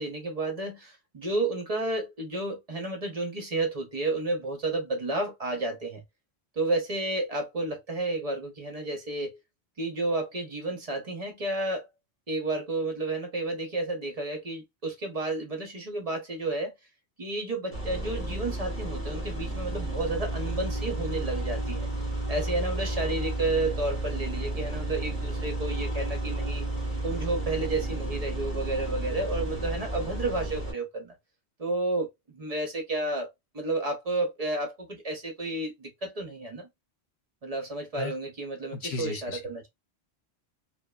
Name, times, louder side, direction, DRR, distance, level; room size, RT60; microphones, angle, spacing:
voice 1, 0.0-6.0 6.6-9.4 9.8-11.9 12.3-16.8 17.2-21.9 22.3-26.7 27.0-31.2 31.6-36.7 37.4-39.7, right 2 dB, 40° right, 0.6 m, -31 dB
sound 1, 17.7-30.7, right 1 dB, 10° left, 1.3 m, -32 dB
voice 2, 38.6-39.4, left 4 dB, 70° left, 0.9 m, -35 dB
3.0 x 2.1 x 2.2 m
omnidirectional pair, 1.1 m